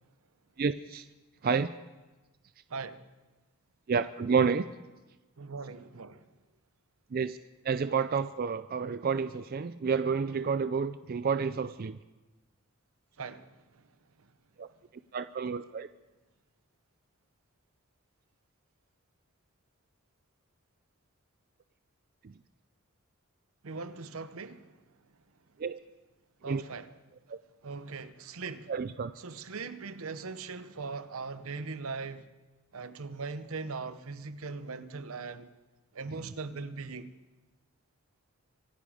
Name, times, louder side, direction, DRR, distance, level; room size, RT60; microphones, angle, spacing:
voice 1, 0.6-1.0 1.4-1.7 3.9-4.7 7.1-7.4 7.6-12.0 14.6-14.7 15.1-15.9 25.6-25.8 26.4-26.6 27.3-27.4 28.7-29.1 36.1-36.3, right 5 dB, 45° right, 0.4 m, -30 dB
voice 2, 2.7-3.1 5.4-6.2 13.2-13.5 23.6-24.7 26.4-26.9 27.6-28.7 29.2-32.2 32.7-35.5 35.9-37.1, right 4 dB, 80° right, 0.8 m, -40 dB
24.5 x 10.5 x 5.0 m
head